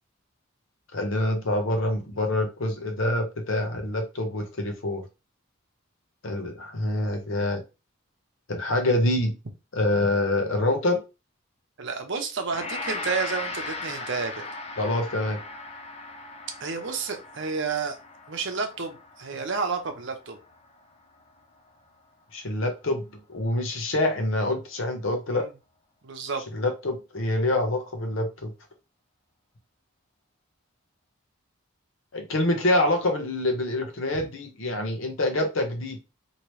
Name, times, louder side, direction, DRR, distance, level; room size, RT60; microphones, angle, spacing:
voice 1, 0.9-5.0 6.2-7.6 8.5-9.3 9.7-11.0 14.8-15.4 22.3-23.0 23.3-25.4 26.5-28.5 32.1-36.0, left 1 dB, 65° left, 4 dB, 0.9 m, -26 dB
voice 2, 11.8-14.4 16.6-18.0 18.3-20.4 25.3-25.5 26.0-26.4, right 5 dB, 60° right, 5 dB, 0.7 m, -30 dB
Gong, 12.5-21.7, left 3 dB, 30° left, 0.5 m, -38 dB
3.0 x 2.8 x 3.1 m, 0.28 s
head